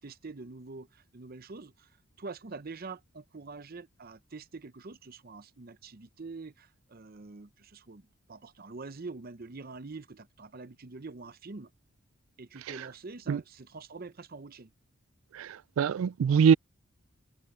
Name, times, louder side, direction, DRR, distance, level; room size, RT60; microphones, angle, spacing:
voice 1, 0.0-11.7 12.4-14.7, right 3 dB, 45° right, 0.7 m, -45 dB
voice 2, 15.3-16.5, right 7 dB, 80° right, 0.3 m, -24 dB
head